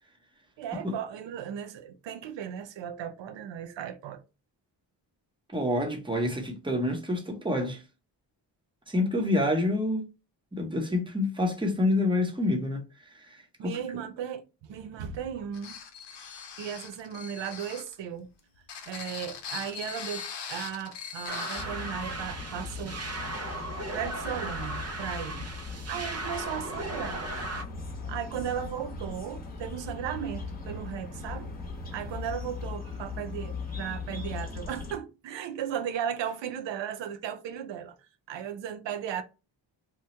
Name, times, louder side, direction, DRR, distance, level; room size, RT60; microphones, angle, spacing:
voice 1, 0.6-4.2 13.6-15.7 16.6-18.3 18.9-20.2 20.5-23.0 23.9-27.3 28.1-31.5 31.9-38.0 38.3-39.2, right 9 dB, 85° right, 0.6 m, -36 dB
voice 2, 5.5-7.8 8.9-10.1 10.5-12.8 13.2-13.4 13.6-13.8, left 1 dB, 10° right, 0.9 m, -27 dB
sound 1, 15.5-17.9 18.6-21.7, left 6 dB, 70° left, 0.8 m, -40 dB
sound 2, 21.3-27.6, right 2 dB, 35° right, 0.6 m, -37 dB
sound 3, 21.6-35.0, left 3 dB, 20° left, 1.0 m, -39 dB
2.9 x 2.3 x 4.2 m
cardioid pair, 110°, 43 cm